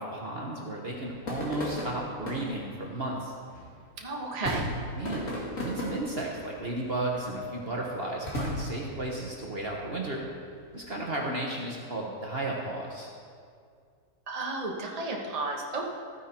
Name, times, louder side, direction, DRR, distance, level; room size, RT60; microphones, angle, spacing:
voice 1, 0.0-3.3 5.0-5.3 5.5-10.2 10.7-13.1, right 2 dB, 40° right, -2 dB, 1.3 m, -34 dB
sound 1, 0.9-11.2, left 1 dB, 55° left, 2.7 m, -38 dB
voice 2, 4.0-4.6 14.3-15.9, right 2 dB, 25° right, -1 dB, 1.3 m, -32 dB
14.0 x 9.3 x 4.4 m, 2.2 s
omnidirectional pair, 1.6 m